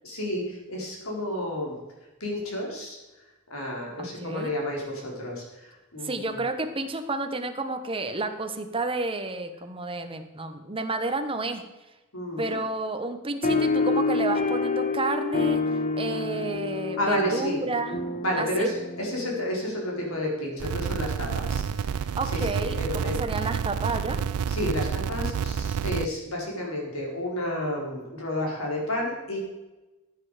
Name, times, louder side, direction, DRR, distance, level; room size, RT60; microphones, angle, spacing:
voice 1, 0.0-1.8 2.2-3.0 3.5-6.5 12.1-12.6 16.1-16.2 17.0-17.6 18.2-23.2 24.5-29.4, left 1 dB, 70° left, -1 dB, 4.4 m, -31 dB
voice 2, 4.0-4.5 6.0-11.6 12.4-15.6 16.0-18.0 18.4-18.7 22.2-24.2, right 2 dB, 25° right, 8 dB, 1.1 m, -30 dB
sound 1, 13.4-20.3, left 3 dB, 35° left, 1.2 m, -28 dB
sound 2, 20.6-26.1, right 7 dB, 80° right, 0.4 m, -29 dB
15.0 x 8.9 x 5.0 m, 1.1 s
head